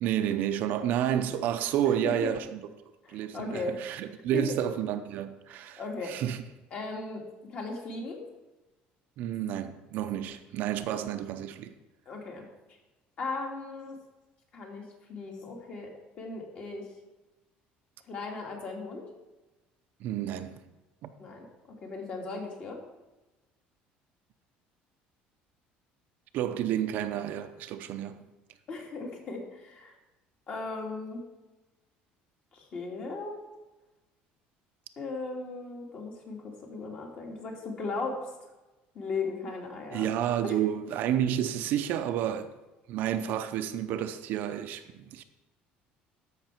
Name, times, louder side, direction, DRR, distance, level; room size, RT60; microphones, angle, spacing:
voice 1, 0.0-2.6 3.1-6.4 9.2-11.7 20.0-20.6 21.0-21.1 26.3-28.3 39.9-42.5 42.9-45.2, right 10 dB, 55° right, 0.6 m, -30 dB
voice 2, 1.8-2.3 3.0-3.8 4.3-4.6 5.5-6.1 6.7-7.2 7.5-8.2 12.1-12.5 13.2-14.0 14.5-16.9 18.0-19.1 21.2-22.8 28.7-30.0 30.5-31.3 32.5-33.4 35.0-38.3 38.9-40.1 40.4-40.6, left 3 dB, 35° left, 2.0 m, -37 dB
13.5 x 5.9 x 4.4 m
cardioid pair, 170°, 4 cm